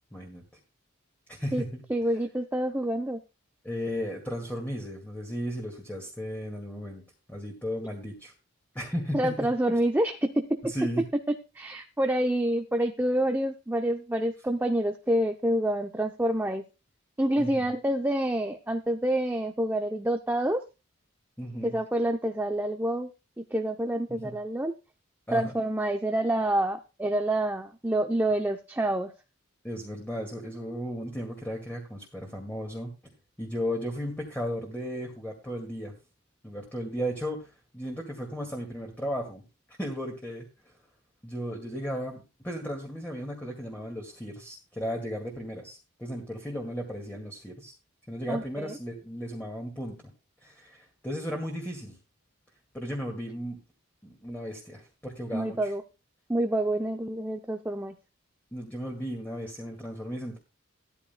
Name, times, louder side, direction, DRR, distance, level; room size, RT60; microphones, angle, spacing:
voice 1, 0.1-0.4 1.3-1.8 3.6-7.0 7.3-8.3 8.7-9.5 10.6-11.0 17.4-17.7 21.4-21.8 24.1-24.3 25.3-25.6 29.6-32.9 33.4-35.9 36.4-39.4 39.8-40.7 41.2-47.7 48.1-50.0 50.4-52.0 52.7-53.6 54.0-55.7 58.5-60.4, equal, 10° left, 1 dB, 2.0 m, -35 dB
voice 2, 1.9-3.2 9.1-10.6 11.5-16.6 17.2-20.6 21.6-23.1 23.4-24.7 25.3-29.1 48.3-48.7 55.3-55.8 56.3-57.9, right 1 dB, 10° right, 5 dB, 0.5 m, -27 dB
15.0 x 13.0 x 2.2 m, 0.28 s
head